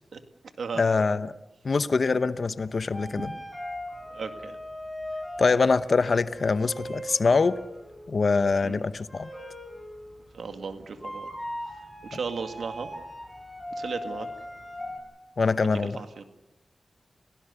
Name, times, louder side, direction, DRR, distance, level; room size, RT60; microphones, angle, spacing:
voice 1, 0.8-1.3 1.6-3.3 5.4-7.6 8.1-9.3 15.4-16.0, left 4 dB, 55° left, 0.9 m, -24 dB
sound 1, 2.7-15.0, equal, 10° left, 6.2 m, -39 dB
voice 2, 4.1-4.6 8.6-8.8 10.3-11.3 12.1-12.9 13.8-14.3 15.8-16.2, right 5 dB, 85° right, 2.1 m, -35 dB
29.5 x 18.0 x 6.8 m
wide cardioid pair, 95°, 0 cm